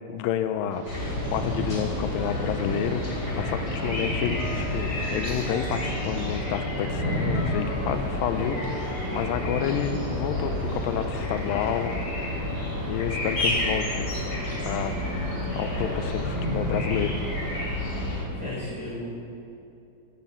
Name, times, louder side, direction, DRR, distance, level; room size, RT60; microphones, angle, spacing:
voice 1, 0.1-0.9 1.3-11.9 12.8-14.1 14.6-15.0 15.5-17.2, left 9 dB, 80° left, 9 dB, 2.2 m, -30 dB
sound 1, 0.7-17.6, right 2 dB, 70° right, 1.7 m, -42 dB
sound 2, 0.8-18.2, left 1 dB, 30° left, 2.8 m, -29 dB
sound 3, 2.2-2.9 3.3-13.6, left 2 dB, 65° left, 2.1 m, -44 dB
voice 2, 18.3-19.0, left 1 dB, 20° right, -10 dB, 3.7 m, -35 dB
11.5 x 9.8 x 7.4 m, 2.7 s
omnidirectional pair, 4.7 m